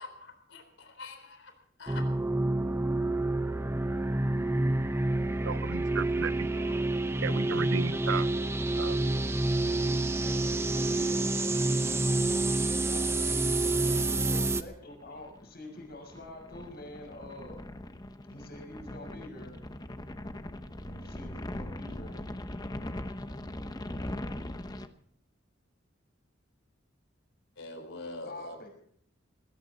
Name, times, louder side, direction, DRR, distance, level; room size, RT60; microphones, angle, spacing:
voice 1, 0.0-1.5 1.8-2.1 27.6-28.6, left 3 dB, 75° left, 6 dB, 3.9 m, -44 dB
sound 1, 1.9-14.6, right 2 dB, 15° right, 0.7 m, -28 dB
voice 2, 5.4-6.5 7.2-8.3 8.8-9.0, right 6 dB, 75° right, 17 dB, 0.6 m, -34 dB
voice 3, 6.3-6.7 10.1-17.7 18.2-19.6 20.8-22.3 28.2-28.7, left 1 dB, 55° left, 2 dB, 6.3 m, -47 dB
sound 2, 14.8-24.9, left 1 dB, 20° left, 0.9 m, -40 dB
19.5 x 17.5 x 4.1 m, 0.64 s
head